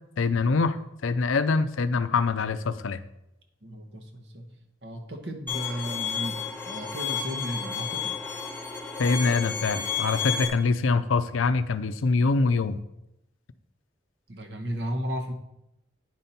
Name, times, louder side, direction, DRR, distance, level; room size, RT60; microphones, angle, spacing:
voice 1, 0.2-0.8 1.0-3.0 9.0-12.8, left 4 dB, 85° left, 11 dB, 0.5 m, -24 dB
voice 2, 3.6-4.5 4.8-8.2 14.3-15.3, equal, 55° right, 4 dB, 1.1 m, -34 dB
Bowed string instrument, 5.5-10.5, left 6 dB, 10° left, 0.9 m, -32 dB
9.6 x 5.4 x 4.3 m, 0.85 s
head